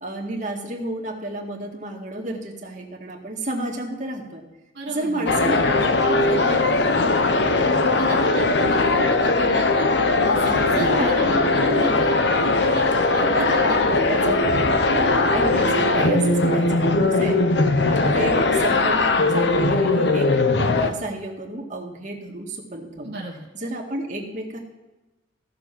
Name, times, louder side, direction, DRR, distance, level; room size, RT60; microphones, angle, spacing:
voice 1, 0.0-4.4 4.9-8.2 10.8-11.3 11.7-12.0 13.2-14.6 14.9-17.4 17.9-23.1 23.5-24.6, right 1 dB, 40° right, 0 dB, 2.0 m, -31 dB
voice 2, 4.7-5.3 8.0-9.9 10.2-13.9 23.0-23.5, right 2 dB, 60° right, -1 dB, 1.5 m, -34 dB
sound 1, 5.3-20.9, left 2 dB, 70° left, 0.9 m, -20 dB
14.5 x 6.8 x 5.9 m, 1.1 s
head